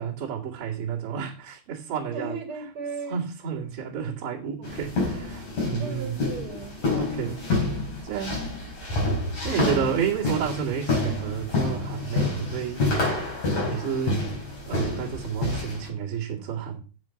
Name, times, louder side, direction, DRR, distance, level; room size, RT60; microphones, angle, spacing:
voice 1, 0.0-2.4 3.1-6.2 6.8-7.4 8.0-8.4 9.4-13.3 13.6-14.3 14.6-16.8, right 7 dB, 40° right, 2.5 m, -31 dB
voice 2, 2.1-3.2 5.8-6.8, right 4 dB, 85° right, 1.1 m, -36 dB
sound 1, 4.6-15.9, left 2 dB, 35° left, 4.6 m, -28 dB
7.8 x 7.5 x 5.8 m
omnidirectional pair, 5.3 m